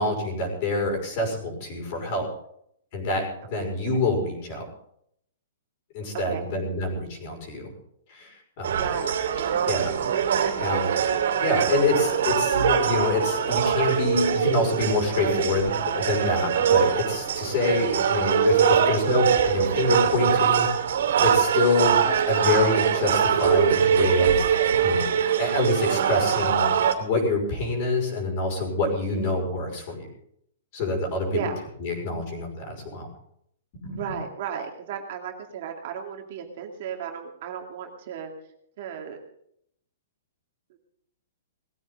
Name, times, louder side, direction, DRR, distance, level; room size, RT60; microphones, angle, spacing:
voice 1, 0.0-2.3 2.9-4.6 5.9-7.7 8.1-8.8 9.7-9.9 10.6-10.9 11.4-20.9 21.2-24.5 24.8-25.1 25.4-26.7 27.0-30.0 30.7-31.4 31.8-33.1 33.8-34.0, left 2 dB, 30° left, 2 dB, 5.8 m, -26 dB
voice 2, 6.1-6.4 8.8-9.7 10.4-11.2 29.2-29.3 31.3-31.6 33.9-38.3 38.8-39.2 40.7-40.8, right 8 dB, 40° right, 2 dB, 2.4 m, -35 dB
sound 1, 8.6-26.9, right 8 dB, 65° right, 3.0 m, -23 dB
19.5 x 15.0 x 3.9 m, 0.70 s
hypercardioid pair, 175°, 0 cm